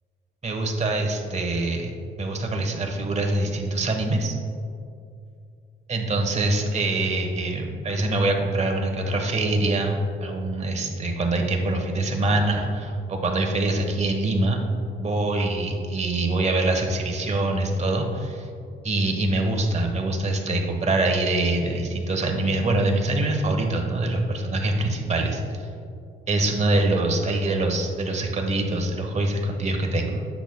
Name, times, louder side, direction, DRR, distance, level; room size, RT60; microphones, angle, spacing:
voice 1, 0.4-1.9 2.2-4.3 5.9-14.6 15.0-18.5 18.8-25.6 26.3-30.2, right 2 dB, 35° right, 2 dB, 1.1 m, -24 dB
10.0 x 7.2 x 2.2 m, 2.4 s
cardioid pair, 90°, 20 cm